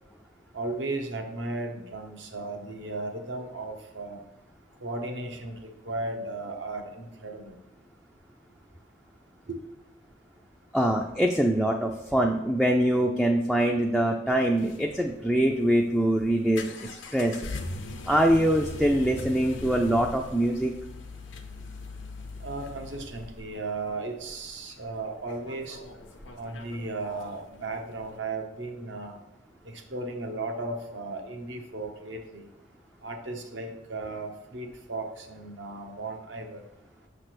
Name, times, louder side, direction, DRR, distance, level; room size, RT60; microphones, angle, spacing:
voice 1, 0.5-4.2 4.8-7.6 9.5-9.6 22.4-25.8 26.4-29.2 29.6-32.5 33.0-36.6, right 2 dB, 75° right, 3 dB, 1.0 m, -35 dB
voice 2, 10.7-17.4 18.1-20.7, right 1 dB, ahead, 1 dB, 0.3 m, -24 dB
sound 1, 14.3-28.2, left 2 dB, 90° left, 0.8 m, -41 dB
6.5 x 3.3 x 6.0 m, 0.98 s
head